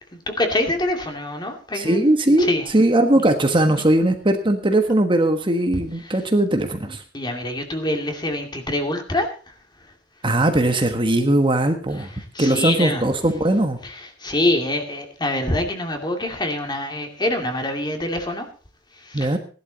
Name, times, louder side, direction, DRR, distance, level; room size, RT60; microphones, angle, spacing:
voice 1, 0.1-2.0 2.4-2.7 3.7-3.8 6.0-6.2 6.8-9.3 12.3-13.0 13.8-18.5 19.0-19.3, left 1 dB, 25° left, 4 dB, 2.5 m, -25 dB
voice 2, 1.7-2.5 2.7-7.0 10.2-12.1 12.4-13.8 19.1-19.4, right 1 dB, 30° right, 6 dB, 1.4 m, -19 dB
17.0 x 11.5 x 4.0 m, 0.37 s
head